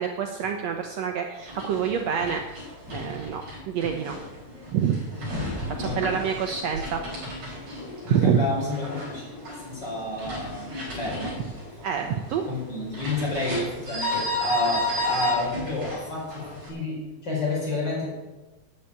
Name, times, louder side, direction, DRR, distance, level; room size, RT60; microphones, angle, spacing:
voice 1, 0.0-2.4 2.9-4.2 4.7-5.0 5.8-7.0 8.0-8.4 11.8-12.4, right 8 dB, 85° right, 4 dB, 1.4 m, -26 dB
sound 1, 1.4-16.7, left 1 dB, 50° right, 5.5 m, -34 dB
voice 2, 5.8-6.2 8.0-9.2 9.6-10.7 11.0-11.4 12.5-18.1, left 2 dB, 30° left, -4 dB, 5.2 m, -29 dB
9.9 x 9.1 x 8.8 m, 1.1 s
omnidirectional pair, 4.2 m